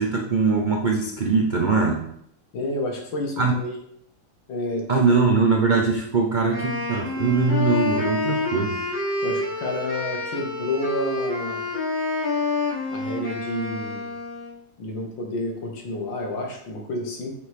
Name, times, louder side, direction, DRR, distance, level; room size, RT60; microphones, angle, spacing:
voice 1, 0.0-2.1 3.4-3.5 4.9-8.8, right 4 dB, 75° right, 0 dB, 0.4 m, -21 dB
voice 2, 2.5-3.8 4.5-5.2 9.2-11.6 12.9-14.1 14.8-17.3, left 2 dB, 75° left, 0 dB, 2.2 m, -30 dB
Wind instrument woodwind instrument, 6.5-14.6, left 2 dB, 55° left, 3.0 m, -28 dB
6.8 x 6.2 x 3.6 m, 0.70 s
omnidirectional pair, 2.1 m